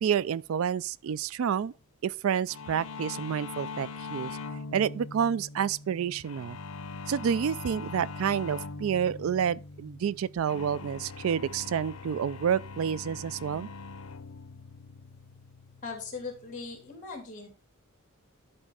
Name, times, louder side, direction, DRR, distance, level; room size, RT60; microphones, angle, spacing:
voice 1, 0.0-1.7 2.0-4.4 4.7-6.6 7.1-13.7, right 8 dB, 65° right, 0.3 m, -29 dB
sound 1, 2.5-16.9, left 4 dB, 75° left, 0.8 m, -42 dB
voice 2, 15.8-17.5, left 4 dB, 35° left, 3.3 m, -39 dB
11.5 x 4.5 x 4.8 m
head